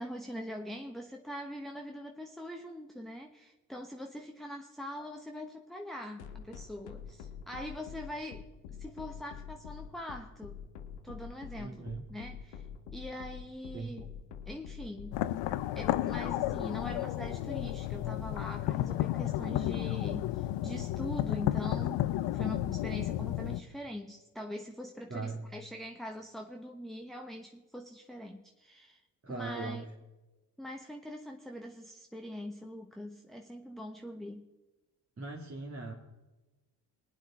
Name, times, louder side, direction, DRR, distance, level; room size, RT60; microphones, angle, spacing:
voice 1, 0.0-10.6 11.0-12.6 12.9-14.1 14.5-15.3 15.7-29.0 29.3-29.8 30.6-34.5, equal, ahead, 3 dB, 1.1 m, -43 dB
sound 1, 6.2-18.4, left 8 dB, 90° left, 1.2 m, -45 dB
voice 2, 11.6-12.0 13.7-13.9 25.1-25.4 29.2-29.9 35.2-35.9, right 3 dB, 30° right, -3 dB, 2.4 m, -39 dB
sound 2, 15.1-23.6, left 14 dB, 70° left, 0.8 m, -32 dB
21.0 x 9.4 x 4.3 m, 1.1 s
supercardioid pair, 65°, 44 cm